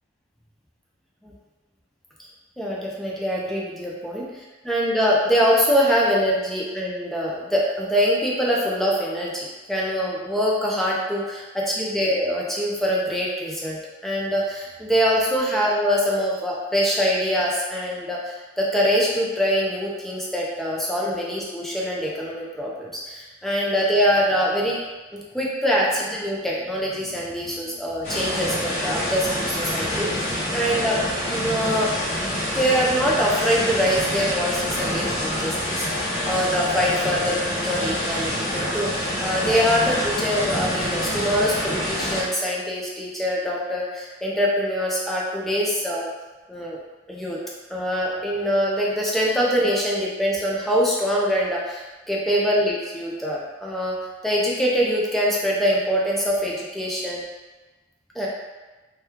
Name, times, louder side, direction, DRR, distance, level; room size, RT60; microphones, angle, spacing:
voice 1, 2.6-24.8 25.3-31.0 31.3-31.9 32.5-46.1 46.5-46.8 47.1-47.4 47.7-53.9 54.2-57.2 58.1-58.3, equal, ahead, -5 dB, 0.5 m, -24 dB
sound 1, 28.0-42.2, left 1 dB, 40° left, 1.0 m, -26 dB
2.9 x 2.3 x 3.5 m, 1.2 s
head